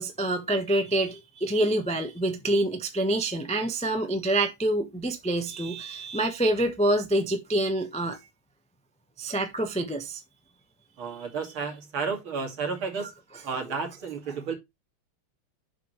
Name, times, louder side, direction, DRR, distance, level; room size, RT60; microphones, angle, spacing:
voice 1, 0.0-8.2 9.2-10.2 13.0-13.1, right 1 dB, 5° left, 0.7 m, -26 dB
voice 2, 11.0-13.1 13.4-14.6, right 5 dB, 65° right, 3.1 m, -32 dB
7.4 x 6.2 x 3.1 m
omnidirectional pair, 2.4 m